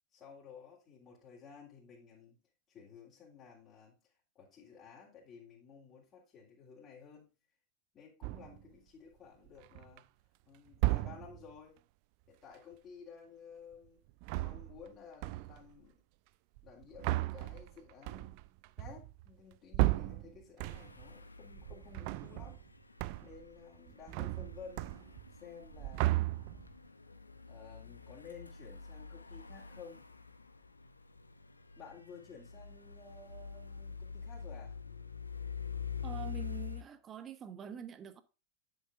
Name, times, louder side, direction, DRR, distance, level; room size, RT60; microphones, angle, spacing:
voice 1, 0.1-2.4 2.7-7.3 7.9-10.1 10.4-11.8 12.3-14.0 14.4-16.0 16.6-18.4 18.8-22.6 23.2-26.1 27.5-30.1 31.8-34.8, left 6 dB, 30° left, 3.4 m, -54 dB
sound 1, 8.2-8.7 9.5-10.0 10.7-11.5 14.1-14.9 15.2-15.7 16.6-21.1 21.5-22.7 23.0-23.5 23.7-25.4 25.6-26.8, right 19 dB, 45° right, 0.5 m, -35 dB
sound 2, 20.7-36.8, left 7 dB, 80° left, 1.0 m, -46 dB
voice 2, 36.0-38.2, right 8 dB, 25° right, 1.2 m, -45 dB
10.0 x 8.3 x 2.5 m
figure-of-eight pair, 90°, 0 cm